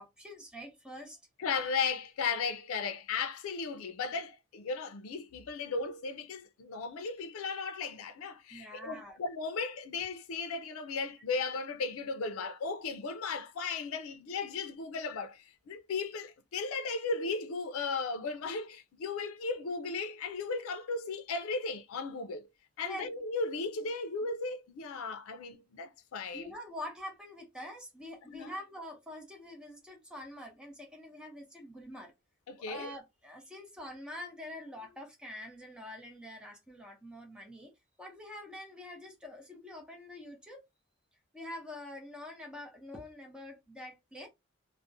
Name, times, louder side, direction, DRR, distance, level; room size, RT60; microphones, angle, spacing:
voice 1, 0.0-1.2 8.5-9.2 22.8-23.1 26.3-32.1 32.6-37.7 38.0-40.6 41.3-44.3, left 1 dB, 5° right, 0.6 m, -45 dB
voice 2, 1.4-22.5 22.8-26.4 28.3-28.5 32.5-32.9, left 4 dB, 85° left, 0.4 m, -36 dB
2.4 x 2.0 x 2.5 m
head